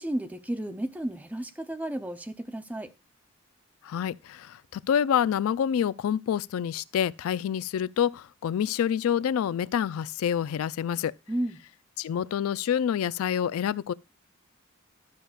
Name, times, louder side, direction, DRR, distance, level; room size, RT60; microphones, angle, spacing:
voice 1, 0.0-2.9 11.3-11.6, right 1 dB, 5° right, 0.5 m, -33 dB
voice 2, 3.8-11.1 12.0-13.9, left 9 dB, 80° left, 0.3 m, -27 dB
12.5 x 6.7 x 2.3 m
head